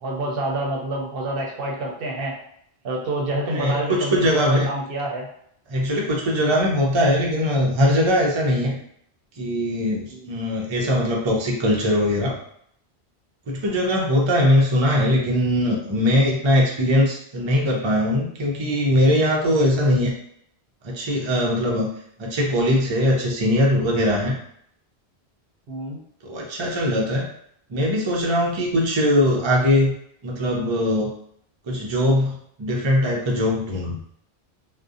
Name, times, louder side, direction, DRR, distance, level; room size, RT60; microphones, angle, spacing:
voice 1, 0.0-2.3 2.8-5.3 10.1-10.3 25.7-26.0, right 1 dB, 65° right, -1 dB, 0.7 m, -27 dB
voice 2, 3.5-4.7 5.7-8.8 9.4-12.4 13.5-20.1 20.8-21.9 22.2-24.4 26.2-27.3 27.7-29.9 30.2-31.1 31.7-34.0, equal, 45° right, -2 dB, 0.4 m, -21 dB
2.6 x 2.1 x 2.4 m, 0.68 s
omnidirectional pair, 1.1 m